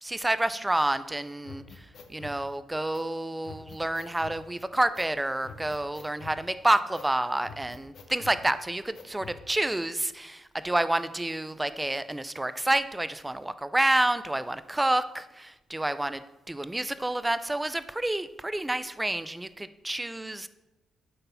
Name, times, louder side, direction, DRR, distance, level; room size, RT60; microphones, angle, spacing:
voice 1, 0.0-20.5, right 1 dB, 10° right, 13 dB, 0.4 m, -29 dB
sound 1, 1.4-2.4 2.9-3.0 3.4-4.4 4.9-5.1 5.4-6.4 6.9-7.1 7.4-8.4 8.9-9.4, left 5 dB, 60° left, 1.0 m, -46 dB
9.2 x 3.9 x 5.6 m, 0.98 s
cardioid pair, 90°, 0 cm